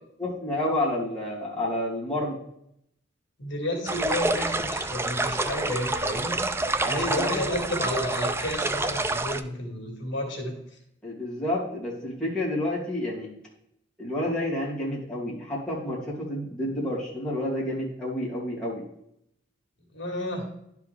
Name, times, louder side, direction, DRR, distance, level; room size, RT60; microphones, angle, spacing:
voice 1, 0.2-2.4 6.8-7.4 11.0-13.3 14.0-18.8, left 1 dB, 5° left, -7 dB, 2.6 m, -29 dB
voice 2, 3.4-6.4 6.9-10.5 19.9-20.5, left 1 dB, 65° left, 0 dB, 2.0 m, -31 dB
sound 1, 3.9-9.4, right 2 dB, 15° right, 0.3 m, -28 dB
11.5 x 4.8 x 3.5 m, 0.76 s
head